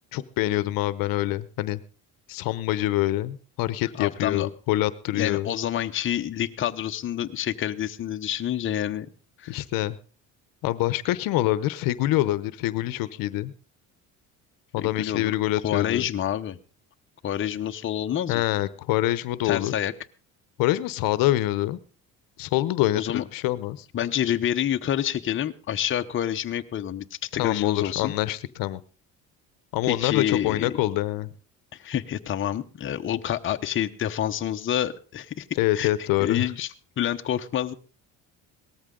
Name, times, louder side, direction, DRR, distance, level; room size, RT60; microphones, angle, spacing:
voice 1, 0.1-1.8 2.3-5.5 9.5-10.0 10.6-13.5 14.7-16.1 18.3-19.7 20.6-21.8 22.4-23.9 27.4-28.8 29.7-31.3 35.6-36.4, left 15 dB, 75° left, 16 dB, 0.9 m, -25 dB
voice 2, 4.0-4.5 5.1-9.1 9.4-9.6 14.8-15.3 15.6-16.6 17.2-18.4 19.4-19.9 23.0-23.2 23.9-28.1 29.8-30.8 31.7-35.5 35.7-35.9 36.2-36.7 37.0-37.7, left 10 dB, 35° left, 6 dB, 0.9 m, -28 dB
18.0 x 14.0 x 3.8 m, 0.36 s
cardioid pair, 120°, 34 cm